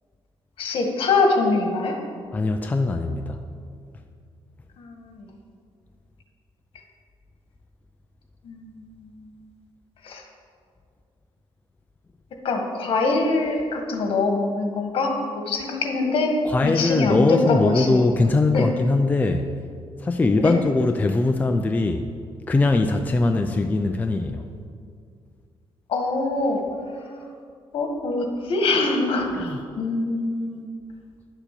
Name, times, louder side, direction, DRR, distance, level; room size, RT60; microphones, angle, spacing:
voice 1, 0.6-2.0 4.8-5.2 8.4-8.7 10.0-10.2 12.4-16.4 16.6-18.0 18.5-18.7 20.4-20.5 25.9-26.6 27.7-30.6, left 3 dB, 60° left, 3 dB, 1.8 m, -24 dB
voice 2, 2.3-3.4 16.4-19.5 20.0-22.1 22.5-24.4 29.2-29.7, left 3 dB, 15° left, 5 dB, 0.4 m, -21 dB
10.5 x 7.4 x 6.8 m, 2.2 s
cardioid pair, 160°, 10 cm